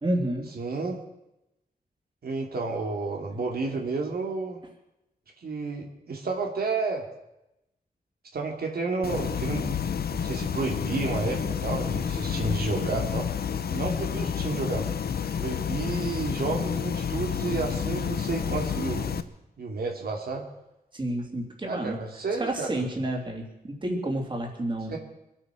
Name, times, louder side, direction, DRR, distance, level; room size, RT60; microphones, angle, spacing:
voice 1, 0.0-0.5 20.9-22.0 22.4-25.0, right 1 dB, 30° right, 1 dB, 2.9 m, -30 dB
voice 2, 0.5-1.0 2.2-4.6 5.4-7.0 8.3-9.8 10.1-14.9 15.4-19.3 19.6-20.4 21.6-22.9 24.9-25.0, right 3 dB, 80° right, 1 dB, 2.6 m, -31 dB
sound 1, 9.0-19.2, left 7 dB, 85° left, 0.9 m, -30 dB
25.0 x 9.0 x 6.2 m, 0.90 s
wide cardioid pair, 135°, 16 cm